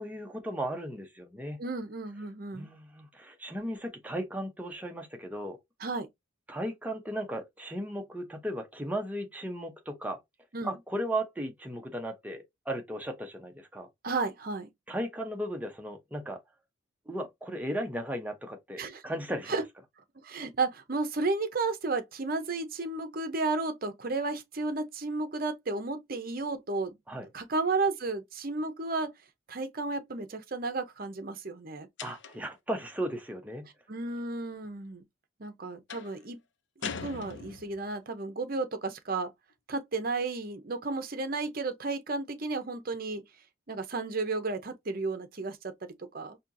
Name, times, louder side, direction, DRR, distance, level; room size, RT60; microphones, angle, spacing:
voice 1, 0.0-1.6 2.5-5.6 6.5-10.2 10.6-13.9 14.9-16.4 17.1-19.6 27.1-27.3 32.0-33.7, right 1 dB, 10° right, 0.7 m, -36 dB
voice 2, 1.6-2.7 5.8-6.1 10.5-10.8 14.0-14.7 18.8-19.0 19.5-19.6 20.2-27.0 27.3-29.1 29.5-31.9 33.9-35.0 35.4-36.4 37.0-39.3 39.7-43.2 43.7-46.4, right 3 dB, 45° right, 0.7 m, -33 dB
sound 1, 32.0-32.6 35.9-36.2 36.8-37.9, left 6 dB, 60° left, 0.5 m, -40 dB
4.3 x 2.8 x 2.6 m
head